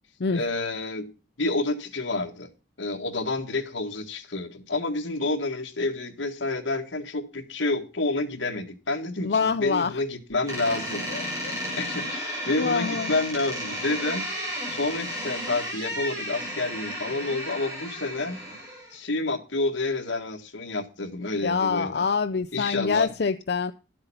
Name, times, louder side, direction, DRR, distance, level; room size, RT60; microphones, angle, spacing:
voice 1, 0.3-1.1 1.4-2.5 2.8-18.4 18.9-22.0 22.5-23.1, left 2 dB, 85° left, 1.7 m, -29 dB
voice 2, 9.2-9.9 11.1-11.6 12.6-13.1 21.4-23.7, left 5 dB, 60° left, 0.5 m, -26 dB
Door, 10.5-19.0, equal, 20° right, 7.6 m, -33 dB
11.5 x 7.9 x 5.5 m
head